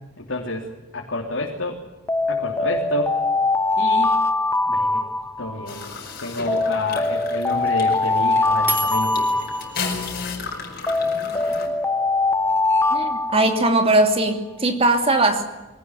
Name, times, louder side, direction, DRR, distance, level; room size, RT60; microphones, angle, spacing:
voice 1, 0.2-0.7 0.9-1.8 2.3-3.2 3.8-4.1 4.7-5.0 5.4-5.8 6.2-9.3, left 2 dB, 70° left, -2 dB, 3.3 m, -28 dB
Alarm, 2.1-5.8 6.5-10.2 10.9-14.1, left 3 dB, 15° left, 0.8 m, -22 dB
sound 1, 5.7-11.7, left 4 dB, 50° left, 5.3 m, -34 dB
sound 2, 7.7-10.9, right 1 dB, 10° right, 2.3 m, -32 dB
voice 2, 12.9-15.5, right 2 dB, 30° right, 5 dB, 3.0 m, -19 dB
23.5 x 18.5 x 9.3 m, 1.1 s
head